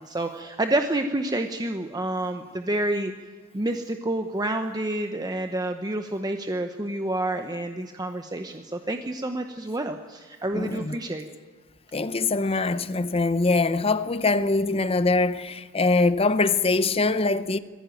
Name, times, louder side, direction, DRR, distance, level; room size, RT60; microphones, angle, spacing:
voice 1, 0.0-3.1 3.5-11.2, right 1 dB, 20° right, 0.9 m, -28 dB
voice 2, 10.5-11.0 11.9-17.6, left 3 dB, 30° left, 0.7 m, -23 dB
20.0 x 15.5 x 9.1 m
head